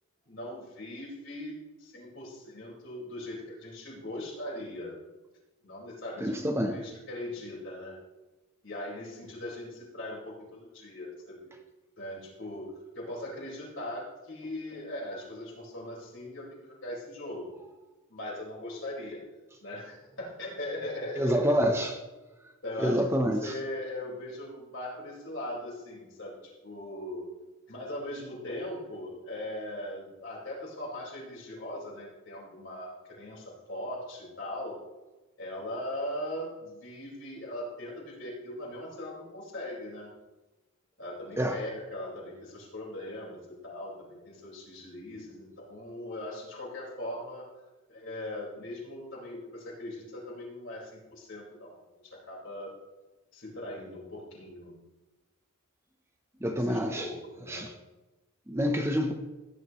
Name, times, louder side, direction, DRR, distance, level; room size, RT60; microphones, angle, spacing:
voice 1, 0.2-5.0 5.6-6.4 6.7-8.0 8.6-11.5 12.0-12.7 12.9-17.5 18.1-19.2 19.6-21.8 22.6-27.2 27.7-34.8 35.4-40.1 41.0-47.5 47.9-52.7 53.3-54.7 56.4-57.7, left 1 dB, 55° left, -4 dB, 4.7 m, -40 dB
voice 2, 6.2-6.8 21.2-22.0 22.8-23.5 41.4-41.6 56.4-57.1 57.5-57.7 58.5-59.1, equal, 10° right, 5 dB, 0.7 m, -27 dB
16.5 x 10.5 x 3.1 m, 1.1 s
head